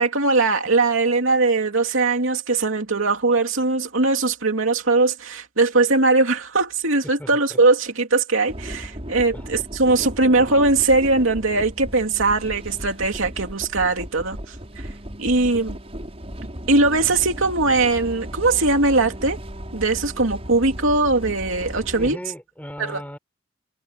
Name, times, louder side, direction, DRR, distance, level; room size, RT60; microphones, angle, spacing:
voice 1, 0.0-14.9 15.2-15.8 16.7-19.4 19.7-22.2 22.8-23.0, right 3 dB, 85° right, 2.7 m, -20 dB
voice 2, 7.2-7.6 9.3-9.5 21.9-23.2, equal, 10° left, 5.7 m, -36 dB
sound 1, 8.5-22.1, equal, 30° right, 6.3 m, -35 dB
head